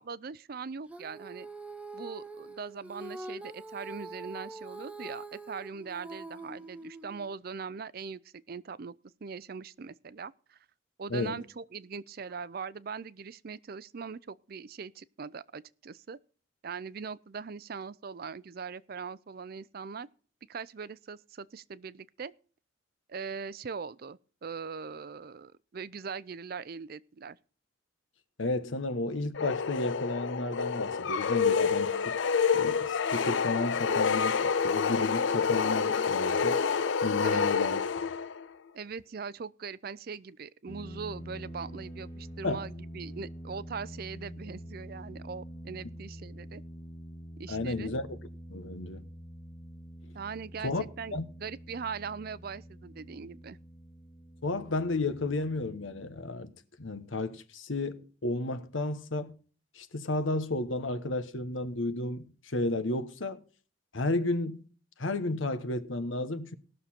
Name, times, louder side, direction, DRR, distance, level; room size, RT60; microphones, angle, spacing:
voice 1, 0.0-1.5 1.9-8.9 9.2-10.6 11.0-16.2 16.6-20.1 20.5-22.3 23.1-27.4 37.2-37.4 38.7-46.6 47.4-47.9 50.1-53.6, right 5 dB, 50° right, 0.5 m, -41 dB
Female singing, 0.9-7.4, right 2 dB, 5° right, 0.7 m, -44 dB
voice 2, 11.1-11.4 28.4-32.2 32.5-36.6 37.0-38.1 42.4-42.6 47.5-48.2 48.5-49.0 50.6-50.8 51.1-51.2 54.4-59.3 59.7-63.4 63.9-64.6 65.0-66.5, left 2 dB, 90° left, 1.1 m, -32 dB
sound 1, 29.4-38.5, left 6 dB, 75° left, 0.6 m, -28 dB
sound 2, 40.7-56.3, equal, 20° left, 1.3 m, -46 dB
19.0 x 6.7 x 4.3 m
head